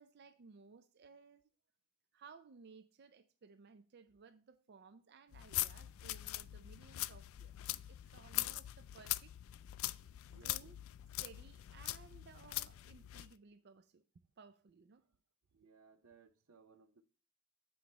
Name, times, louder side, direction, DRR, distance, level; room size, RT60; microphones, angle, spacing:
voice 1, 0.0-1.5 2.1-9.3 10.4-10.8 11.2-14.0 14.4-15.0, right 5 dB, 50° right, 0.4 m, -59 dB
sound 1, 5.3-13.3, left 16 dB, 75° left, 0.3 m, -42 dB
voice 2, 15.5-17.0, right 5 dB, 80° right, 0.7 m, -63 dB
7.8 x 4.9 x 4.0 m
head